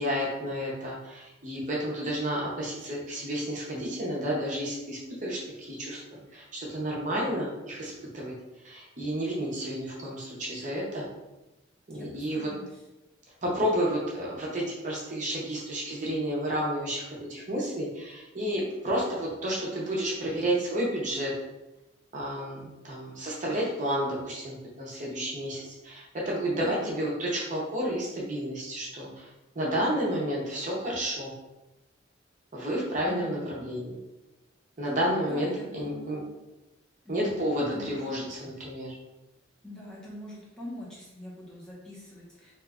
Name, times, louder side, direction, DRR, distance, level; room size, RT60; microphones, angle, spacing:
voice 1, 0.0-6.0 6.3-8.4 8.6-11.1 11.9-12.5 13.4-21.3 22.1-29.3 29.5-31.3 32.5-34.0 34.8-36.2 37.1-38.9, equal, 40° right, -4 dB, 0.6 m, -31 dB
voice 2, 11.9-12.8 26.6-26.9 33.1-33.5 35.3-36.3 37.0-37.4 37.7-38.1 39.6-42.5, left 1 dB, 5° left, -7 dB, 0.7 m, -44 dB
2.9 x 2.2 x 3.5 m, 1.0 s
head